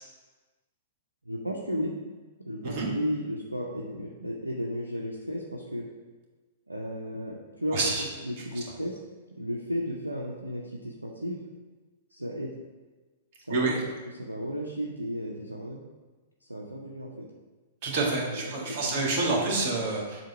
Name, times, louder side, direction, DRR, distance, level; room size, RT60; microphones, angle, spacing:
voice 1, 1.3-1.9 2.4-5.9 6.7-9.0 9.4-11.4 12.1-12.5 13.5-13.7 14.2-15.8 16.5-17.3 18.3-19.1, equal, 90° right, -1 dB, 0.6 m, -34 dB
voice 2, 7.7-8.0 13.5-13.8 17.8-20.2, right 3 dB, 45° right, -2 dB, 1.9 m, -27 dB
7.4 x 2.8 x 5.6 m, 1.3 s
figure-of-eight pair, 105°, 0 cm